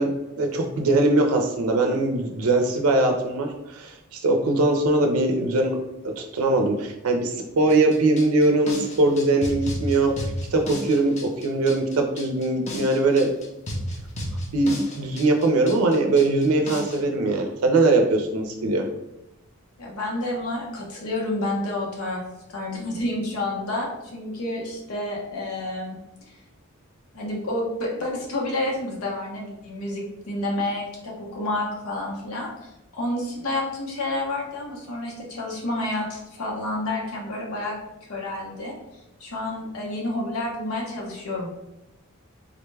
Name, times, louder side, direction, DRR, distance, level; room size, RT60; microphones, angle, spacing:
voice 1, 0.0-5.8 6.0-13.3 14.5-18.9, right 2 dB, 80° right, 3 dB, 0.5 m, -21 dB
sound 1, 7.7-17.0, equal, 30° left, 0.5 m, -33 dB
voice 2, 19.8-22.2 22.5-26.0 27.1-37.7 38.1-38.7 39.2-41.5, left 1 dB, 85° left, -2 dB, 0.9 m, -29 dB
3.8 x 2.2 x 3.2 m, 0.91 s
head